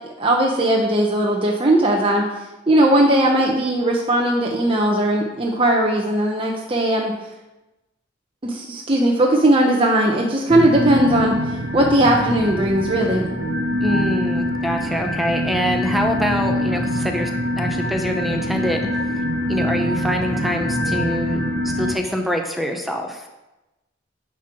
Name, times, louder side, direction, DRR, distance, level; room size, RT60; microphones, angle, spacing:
voice 1, 0.2-2.3 2.7-7.1 8.4-11.4 11.7-13.3, right 1 dB, 30° right, -1 dB, 0.9 m, -18 dB
sound 1, 10.5-21.9, left 1 dB, 60° right, 1.4 m, -24 dB
voice 2, 13.8-17.3 17.6-18.9 19.1-23.3, equal, ahead, 3 dB, 0.8 m, -25 dB
9.8 x 4.6 x 6.1 m, 1.0 s
head